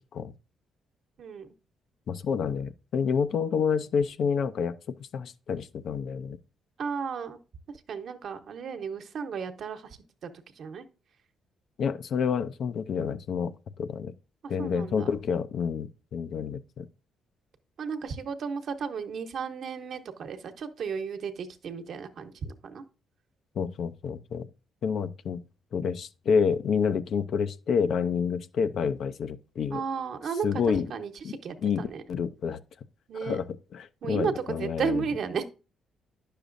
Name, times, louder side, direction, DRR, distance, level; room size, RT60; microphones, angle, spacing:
voice 1, 1.2-1.5 6.8-7.4 7.9-10.0 10.2-10.8 14.4-15.1 17.8-22.8 29.7-30.5 30.9-32.0 33.1-33.4 34.0-35.4, right 6 dB, 65° right, 1.0 m, -34 dB
voice 2, 2.1-6.4 11.8-14.1 14.5-16.9 23.6-24.5 24.8-25.4 25.7-29.8 30.4-30.9 31.2-31.3 31.6-32.6 33.2-33.4 33.7-35.0, left 6 dB, 65° left, 0.6 m, -28 dB
10.0 x 6.6 x 2.6 m
cardioid pair, 90°, 0 cm